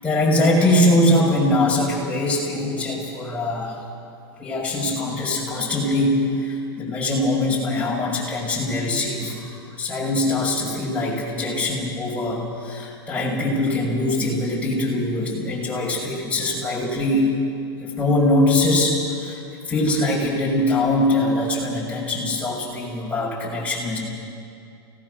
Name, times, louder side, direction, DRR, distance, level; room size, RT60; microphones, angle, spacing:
voice 1, 0.0-3.8 4.4-9.5 9.8-17.3 17.8-19.4 19.7-24.0, left 1 dB, 10° left, -4 dB, 6.7 m, -22 dB
29.0 x 18.5 x 6.8 m, 2.5 s
supercardioid pair, 145°, 13 cm